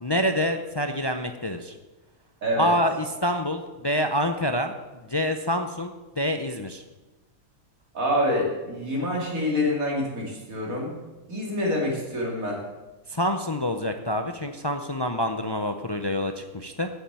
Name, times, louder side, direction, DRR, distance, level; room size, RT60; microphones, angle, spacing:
voice 1, 0.0-1.7 2.6-4.7 5.1-6.8 13.1-16.9, equal, 30° left, 6 dB, 0.4 m, -27 dB
voice 2, 2.4-2.7 7.9-10.9 11.3-12.6, left 1 dB, 85° right, -2 dB, 3.3 m, -26 dB
9.0 x 7.3 x 8.9 m, 1.1 s
omnidirectional pair, 1.4 m